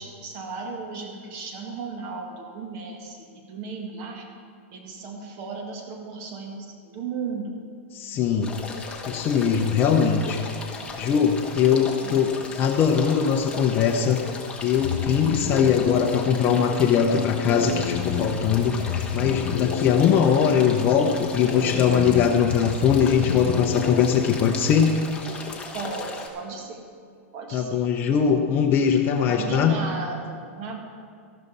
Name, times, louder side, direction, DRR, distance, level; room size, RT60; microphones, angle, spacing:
voice 1, 0.0-3.2 3.5-4.2 4.7-7.5 11.9-12.2 25.7-26.8 27.3-27.7 29.3-30.8, right 4 dB, 40° right, 2 dB, 1.9 m, -35 dB
voice 2, 7.9-8.5 9.1-10.4 10.7-14.2 14.6-25.0 27.5-29.7, left 7 dB, 30° left, 2 dB, 0.8 m, -21 dB
sound 1, 8.4-26.3, left 3 dB, 15° left, 1.3 m, -37 dB
sound 2, 14.8-24.7, left 7 dB, 60° left, 1.2 m, -30 dB
13.5 x 12.0 x 4.2 m, 2.2 s
hypercardioid pair, 140°, 7 cm